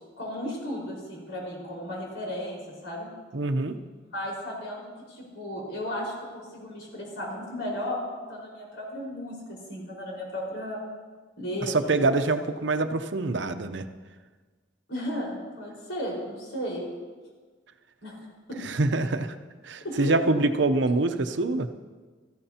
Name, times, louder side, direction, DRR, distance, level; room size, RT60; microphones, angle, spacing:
voice 1, 0.2-3.1 4.1-10.8 11.4-12.2 14.9-16.9 18.0-18.2 18.5-18.6 19.8-20.2 20.4-20.5, equal, 85° left, -3 dB, 4.9 m, -34 dB
voice 2, 3.3-3.7 11.7-13.9 18.6-19.3 19.6-21.7, right 2 dB, 70° right, 9 dB, 0.7 m, -25 dB
18.0 x 14.0 x 2.9 m, 1.4 s
head